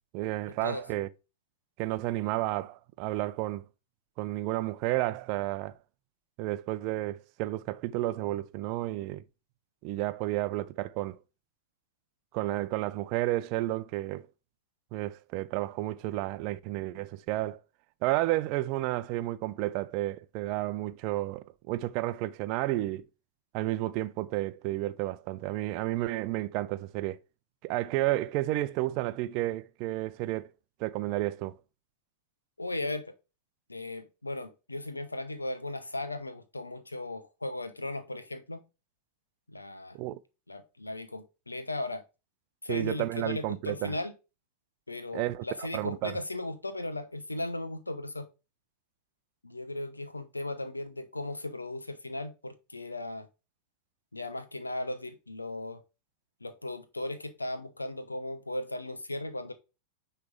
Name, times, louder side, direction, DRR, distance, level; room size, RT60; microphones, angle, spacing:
voice 1, 0.1-1.1 1.8-3.6 4.2-5.8 6.4-9.2 9.8-11.2 12.3-14.3 14.9-17.6 18.0-23.0 23.5-27.2 27.6-30.5 30.8-31.6 39.9-40.2 42.7-44.0 45.1-46.2, right 16 dB, 45° right, 0.6 m, -31 dB
voice 2, 32.6-33.1 33.7-38.6 39.5-40.0 40.5-42.0 42.6-44.1 44.9-48.3 49.4-53.3 54.1-55.8 56.4-59.5, left 2 dB, 80° left, 1.0 m, -37 dB
9.5 x 3.4 x 4.8 m
figure-of-eight pair, 90°, 0 cm